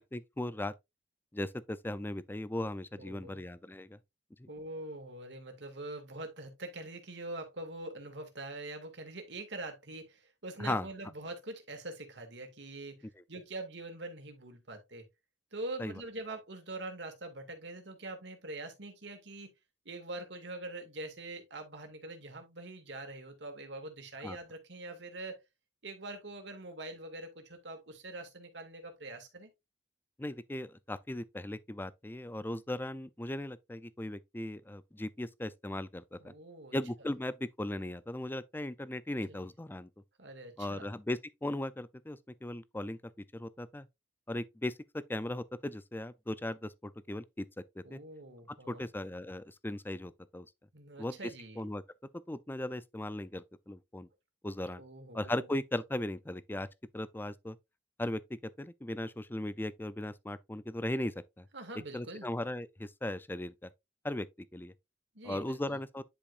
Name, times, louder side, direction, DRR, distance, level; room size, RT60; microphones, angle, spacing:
voice 1, 0.1-0.7 1.3-4.0 4.4-4.5 10.6-10.9 15.8-15.9 24.2-24.4 30.2-36.3 36.7-39.9 40.6-43.9 44.3-47.5 47.9-48.0 48.7-50.5 51.0-51.3 51.6-51.8 52.3-54.1 54.4-54.8 55.1-56.7 56.9-57.6 58.0-61.5 61.9-63.7 64.0-64.3 64.5-64.7 65.2-66.0, left 1 dB, 10° left, 0.5 m, -37 dB
voice 2, 3.0-3.4 4.5-15.1 15.5-19.5 19.9-25.4 25.8-29.5 36.2-36.8 39.3-39.5 40.2-40.9 47.8-48.9 50.7-51.6 54.8-55.5 61.5-62.3 65.1-65.8, right 2 dB, 85° right, 2.2 m, -44 dB
10.0 x 5.1 x 2.5 m
head